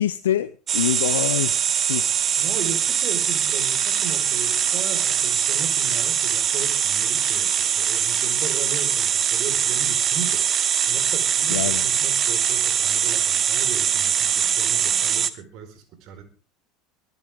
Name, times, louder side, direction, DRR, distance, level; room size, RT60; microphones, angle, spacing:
voice 1, 0.0-2.1 11.5-11.8, left 11 dB, 85° left, 12 dB, 0.7 m, -25 dB
sound 1, 0.7-15.3, right 8 dB, 40° right, 1.4 m, -22 dB
voice 2, 2.4-16.2, right 7 dB, 55° right, 9 dB, 4.9 m, -37 dB
23.0 x 11.0 x 3.7 m, 0.34 s
hypercardioid pair, 80°, 0 cm